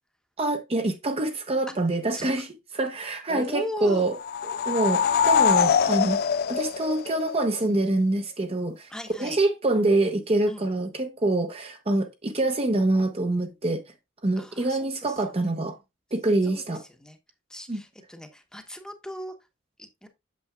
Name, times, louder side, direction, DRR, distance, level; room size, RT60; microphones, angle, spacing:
voice 1, 0.4-2.5 2.7-4.1 4.4-6.2 6.5-8.9 9.2-13.8 14.2-15.8 16.1-16.8 17.7-17.8, right 2 dB, 30° right, 0.8 m, -25 dB
voice 2, 3.3-4.1 8.9-9.4 10.5-10.7 14.4-15.8 16.4-16.6 17.0-17.2 17.5-19.3 19.8-20.1, left 1 dB, 5° left, 1.0 m, -39 dB
sound 1, 4.1-7.6, left 7 dB, 50° left, 0.4 m, -23 dB
8.4 x 7.0 x 2.3 m
head